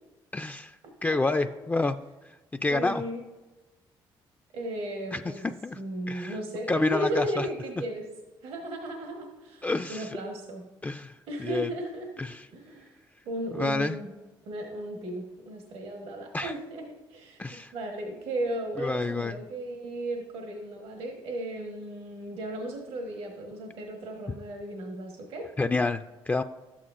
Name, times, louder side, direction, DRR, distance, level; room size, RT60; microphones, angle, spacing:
voice 1, 0.3-0.8 1.0-2.0 2.6-3.0 5.1-5.3 5.6-5.8 6.1-6.4 6.7-7.5 9.6-10.3 10.8-11.1 11.4-11.7 12.2-12.4 13.5-14.0 16.3-16.5 17.4-17.7 18.8-19.4 25.6-26.4, left 3 dB, 15° left, 8 dB, 0.3 m, -28 dB
voice 2, 2.7-3.2 4.5-8.1 8.4-10.6 11.3-12.1 12.5-12.9 13.2-14.1 14.4-16.8 17.1-17.4 17.7-25.5, right 1 dB, 80° right, 1 dB, 1.3 m, -35 dB
12.0 x 8.5 x 2.5 m, 1.2 s
supercardioid pair, 75°, 10 cm